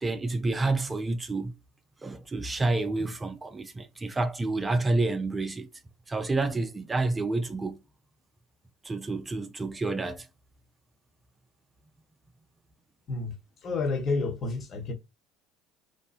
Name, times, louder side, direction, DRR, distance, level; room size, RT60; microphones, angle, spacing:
voice 1, 0.0-1.5 2.0-5.7 6.1-7.8 8.8-10.3, right 2 dB, 20° right, 0.4 m, -29 dB
voice 2, 13.6-14.9, left 3 dB, 45° left, 0.9 m, -29 dB
2.8 x 2.1 x 2.4 m
hypercardioid pair, 75°, 0 cm